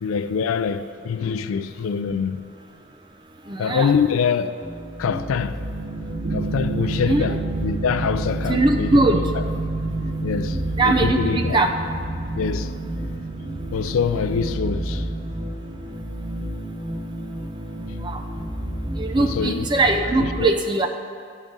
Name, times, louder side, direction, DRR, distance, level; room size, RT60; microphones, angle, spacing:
voice 1, 0.0-2.4 3.6-5.6 6.3-9.4 10.2-11.6 12.4-12.7 13.7-15.1 19.2-19.7 20.2-20.6, left 6 dB, 75° left, 0.3 m, -25 dB
voice 2, 3.5-3.9 6.9-7.4 8.5-9.2 10.8-11.8 18.0-18.2 19.0-20.9, right 2 dB, 20° right, 0.4 m, -21 dB
sound 1, 4.6-20.3, equal, 40° right, 1.4 m, -30 dB
sound 2, 5.6-15.5, right 4 dB, 75° right, 0.6 m, -32 dB
10.5 x 3.7 x 5.3 m
head